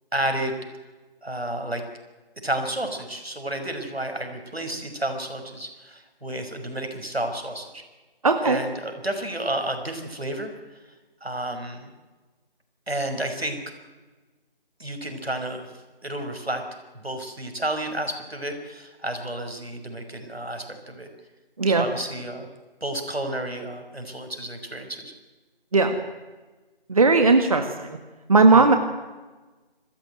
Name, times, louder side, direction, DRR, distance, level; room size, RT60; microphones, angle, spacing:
voice 1, 0.1-0.5 1.2-1.8 2.4-7.8 8.4-10.5 11.2-11.9 12.9-13.6 14.8-15.7 16.0-16.6 16.9-21.1 21.7-22.5 22.8-25.1 28.5-28.7, right 1 dB, 85° right, 5 dB, 6.0 m, -31 dB
voice 2, 8.2-8.6 21.6-21.8 25.7-26.0 26.9-27.9 28.3-28.8, right 3 dB, 35° right, 7 dB, 1.6 m, -17 dB
27.0 x 15.0 x 9.3 m, 1.2 s
figure-of-eight pair, 160°, 30 cm